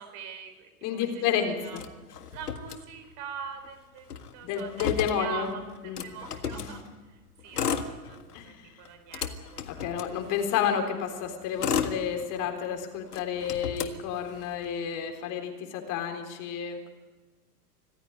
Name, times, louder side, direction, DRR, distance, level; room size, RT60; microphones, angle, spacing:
voice 1, 0.0-1.8 2.3-4.1 4.3-6.8 7.1-10.2, right 7 dB, 40° right, 7 dB, 4.6 m, -43 dB
voice 2, 0.8-1.8 4.4-5.5 5.8-6.0 6.5-6.7 8.3-8.7 9.7-16.9, left 8 dB, 40° left, 5 dB, 3.9 m, -31 dB
Motor vehicle (road), 1.7-3.3 3.6-3.7 4.0-6.7 7.4-8.4 8.8-10.7 11.2-12.7 13.1-14.7, left 7 dB, 75° left, 1.8 m, -34 dB
26.0 x 15.5 x 9.7 m, 1.3 s
figure-of-eight pair, 95°, 46 cm